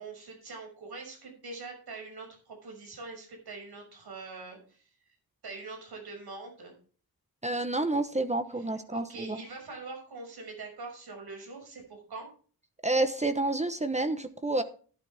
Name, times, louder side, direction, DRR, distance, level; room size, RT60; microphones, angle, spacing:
voice 1, 0.0-4.9 5.4-6.7 8.6-12.3, right 3 dB, 85° right, 2 dB, 6.4 m, -43 dB
voice 2, 7.4-9.4 12.8-14.6, right 2 dB, 20° right, 9 dB, 1.0 m, -29 dB
11.5 x 11.5 x 3.5 m, 0.41 s
wide cardioid pair, 135°, 38 cm